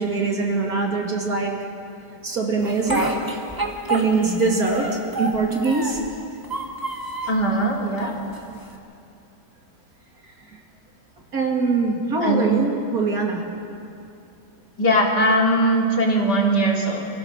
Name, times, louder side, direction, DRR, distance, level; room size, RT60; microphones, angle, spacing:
voice 1, 0.0-1.5 2.2-3.1 3.9-6.0 10.5-10.6 11.3-13.4, right 4 dB, 60° right, 0 dB, 2.9 m, -23 dB
Speech, 2.6-4.4 4.7-6.1 6.4-7.4 8.0-8.7, right 2 dB, 15° right, 1.6 m, -28 dB
voice 2, 7.3-8.1 12.2-12.4 14.8-17.1, right 1 dB, 85° left, -2 dB, 3.5 m, -20 dB
27.5 x 16.5 x 6.1 m, 2.6 s
omnidirectional pair, 1.7 m